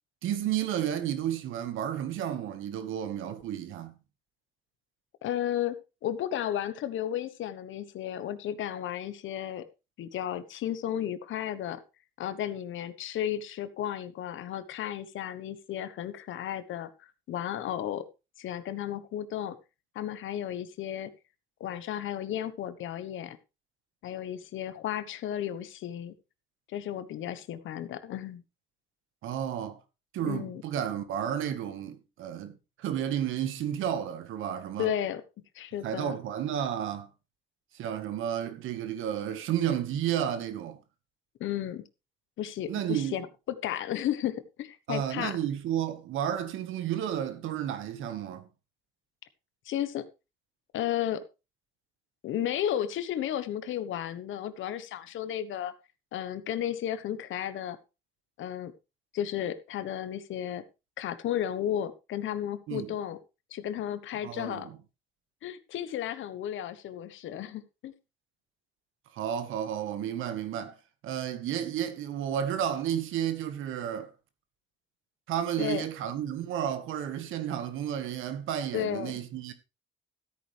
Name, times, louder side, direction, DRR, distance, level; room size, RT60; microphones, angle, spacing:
voice 1, 0.2-4.0 29.2-29.8 30.1-34.9 35.8-37.1 37.7-40.8 42.6-43.2 44.9-48.5 62.7-62.9 64.2-64.8 69.1-70.7 71.0-74.1 75.3-79.5, right 10 dB, 85° right, 1.6 m, -32 dB
voice 2, 5.2-5.8 6.0-9.6 10.0-11.8 12.2-18.0 18.4-19.6 19.9-21.1 21.6-23.4 24.0-26.1 26.7-28.4 30.2-30.6 34.8-35.2 35.5-36.2 41.4-41.9 42.4-43.3 43.6-45.4 49.6-50.1 50.7-51.2 52.2-55.7 56.1-57.8 58.4-58.7 59.1-60.6 61.0-63.2 63.5-64.7 65.4-67.9 75.6-75.8 78.7-79.1, left 11 dB, 80° left, 1.2 m, -33 dB
13.5 x 9.0 x 3.4 m
cardioid pair, 90°, 20 cm